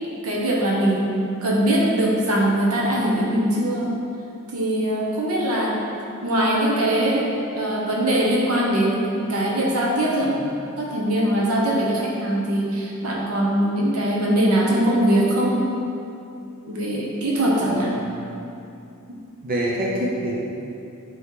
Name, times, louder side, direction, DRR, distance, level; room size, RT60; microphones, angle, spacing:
voice 1, 0.0-1.1 1.4-3.9 4.5-5.8 6.2-10.5 10.8-15.7 16.7-18.0, right 1 dB, 75° right, -3 dB, 1.0 m, -21 dB
voice 2, 17.4-17.9 19.4-20.3, equal, 40° right, -5 dB, 0.8 m, -26 dB
8.1 x 3.1 x 3.8 m, 2.7 s
head